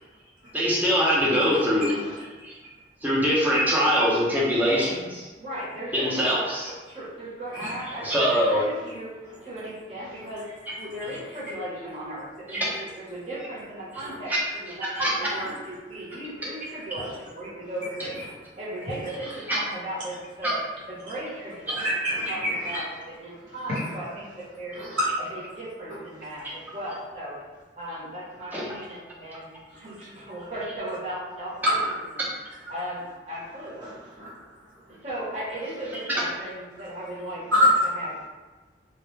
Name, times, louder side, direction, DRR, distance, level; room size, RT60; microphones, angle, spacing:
voice 1, 0.5-1.9 2.4-2.5 3.0-5.3 5.9-6.7 8.0-8.6 12.5-12.6 14.9-15.1 19.5-19.6 28.5-28.6, equal, 10° right, -6 dB, 0.5 m, -23 dB
voice 2, 1.2-2.2 4.1-4.8 7.5-7.7 8.7-8.8 9.2-9.4 10.1-10.2 14.0-14.1 15.2-15.6 16.1-16.2 17.0-17.1 17.8-17.9 18.2-18.3 21.7-22.8 23.7-23.9 24.7-25.1 31.6-31.9 33.8-35.0 37.5-37.9, equal, 85° right, -9 dB, 0.9 m, -28 dB
voice 3, 5.4-6.3 6.9-9.2 9.4-10.4 10.7-18.1 18.6-20.6 20.9-21.8 22.3-22.8 23.2-24.8 25.3-27.3 27.7-31.8 32.7-33.9 35.0-37.7 38.0-38.3, right 1 dB, 35° right, -8 dB, 0.8 m, -36 dB
2.1 x 2.1 x 3.1 m, 1.2 s
head